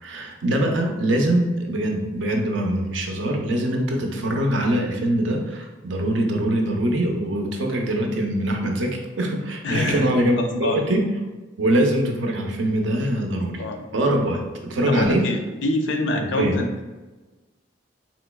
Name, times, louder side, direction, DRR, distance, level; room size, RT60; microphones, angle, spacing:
voice 1, 0.0-11.0 11.6-13.6 13.9-15.2 16.2-16.5, right 1 dB, 85° right, 2 dB, 0.6 m, -23 dB
voice 2, 9.6-10.1 10.4-10.8 13.3-13.9 14.9-16.9, left 2 dB, 75° left, 5 dB, 0.5 m, -26 dB
3.7 x 3.0 x 2.2 m, 1.2 s
head